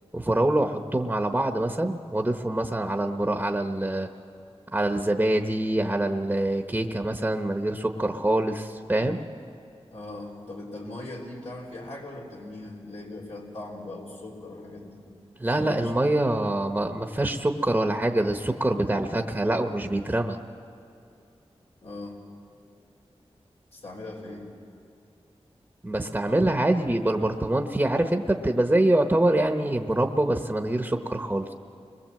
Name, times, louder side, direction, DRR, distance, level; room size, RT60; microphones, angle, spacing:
voice 1, 0.1-4.1 4.7-9.2 15.4-20.4 25.8-31.5, right 1 dB, 15° right, 5 dB, 1.0 m, -25 dB
voice 2, 9.9-15.0 15.6-16.0 21.8-22.2 23.7-24.5, left 2 dB, 85° left, -4 dB, 3.6 m, -39 dB
29.5 x 21.5 x 7.6 m, 2.5 s
wide cardioid pair, 85°, 11 cm